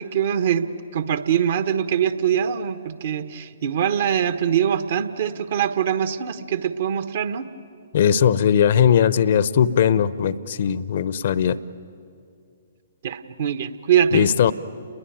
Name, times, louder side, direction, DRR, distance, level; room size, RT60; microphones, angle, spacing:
voice 1, 0.0-7.5 13.0-14.3, right 9 dB, 55° right, 10 dB, 1.3 m, -23 dB
voice 2, 7.9-11.6 14.1-14.5, left 8 dB, 55° left, 17 dB, 0.8 m, -19 dB
29.5 x 21.5 x 9.3 m, 2.3 s
figure-of-eight pair, 120°, 0 cm